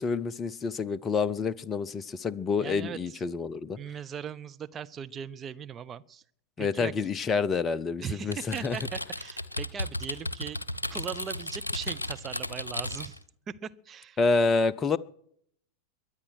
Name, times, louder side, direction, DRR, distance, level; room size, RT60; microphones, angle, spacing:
voice 1, 0.0-3.8 6.6-8.8 14.2-15.0, left 4 dB, 20° left, 0.5 m, -28 dB
voice 2, 2.6-3.2 3.8-6.2 6.6-6.9 8.0-10.6 10.9-13.2 13.5-14.2, right 8 dB, 25° right, 0.7 m, -39 dB
Typing, 8.3-13.2, left 1 dB, 80° left, 0.8 m, -35 dB
22.5 x 8.8 x 6.3 m
figure-of-eight pair, 90°, 0 cm